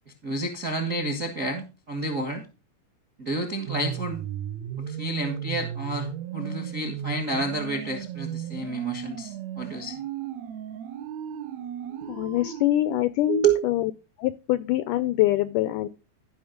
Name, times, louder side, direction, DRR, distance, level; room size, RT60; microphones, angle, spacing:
voice 1, 0.2-2.4 3.2-4.2 4.8-10.0 12.0-12.1 13.3-13.6, right 3 dB, 60° right, 5 dB, 0.8 m, -29 dB
sound 1, 3.7-12.7, right 10 dB, 85° right, 1.5 m, -35 dB
voice 2, 12.1-13.9 14.2-15.9, left 14 dB, 90° left, 15 dB, 1.8 m, -24 dB
14.0 x 5.6 x 5.1 m, 0.31 s
omnidirectional pair, 4.5 m